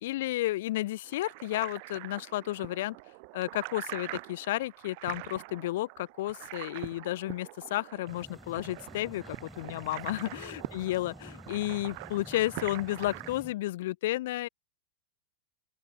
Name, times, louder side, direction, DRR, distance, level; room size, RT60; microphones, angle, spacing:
voice 1, 0.0-3.0 3.3-14.5, left 16 dB, 55° left, 0.6 m, -32 dB
sound 1, 1.0-13.4, right 32 dB, 45° right, 0.5 m, -44 dB
sound 2, 8.1-13.5, left 1 dB, 5° left, 4.4 m, -49 dB
open air
figure-of-eight pair, 90°, 0 cm